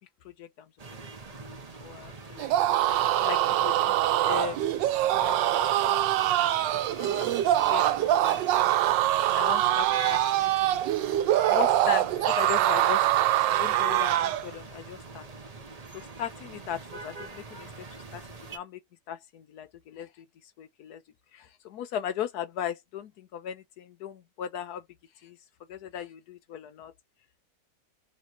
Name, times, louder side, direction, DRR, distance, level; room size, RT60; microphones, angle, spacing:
sound 1, 0.8-18.6, right 4 dB, 35° right, 0.6 m, -43 dB
voice 1, 1.4-2.5 3.2-3.9 4.2-4.7 5.0-8.7 9.3-10.8 11.5-15.3 15.9-17.7 18.1-18.2 18.5-18.8 19.1-20.1 20.6-21.0 21.3-24.8 25.2-25.4 25.7-26.9, left 9 dB, 70° left, 1.1 m, -38 dB
sound 2, 2.4-14.5, right 13 dB, 85° right, 1.3 m, -24 dB
3.2 x 3.1 x 4.3 m
omnidirectional pair, 1.9 m